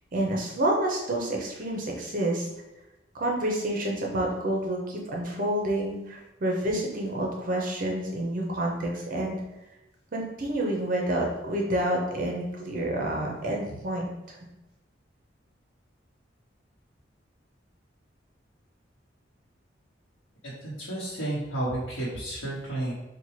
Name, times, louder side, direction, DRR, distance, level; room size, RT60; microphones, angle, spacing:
voice 1, 0.1-2.5 3.1-9.4 10.1-14.4, right 1 dB, 45° right, -1 dB, 0.6 m, -28 dB
voice 2, 20.4-22.9, right 1 dB, 85° left, -7 dB, 0.9 m, -32 dB
4.3 x 2.2 x 3.1 m, 0.99 s
head